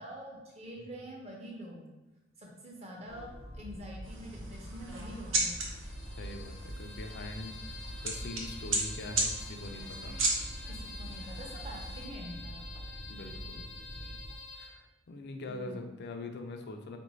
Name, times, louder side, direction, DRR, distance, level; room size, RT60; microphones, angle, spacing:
voice 1, 0.0-1.8 2.4-5.6 10.7-12.6 15.5-15.9, equal, 30° right, -2 dB, 0.8 m, -45 dB
Train, 3.1-14.3, equal, 5° right, 0.5 m, -45 dB
sound 1, 4.0-12.1, right 2 dB, 70° right, 0.8 m, -36 dB
sound 2, 5.6-14.7, left 4 dB, 85° left, 0.8 m, -48 dB
voice 2, 6.2-7.8 8.0-10.2 13.1-13.7 14.6-17.0, left 2 dB, 55° left, 5 dB, 0.4 m, -43 dB
4.4 x 2.6 x 3.1 m, 1.1 s
head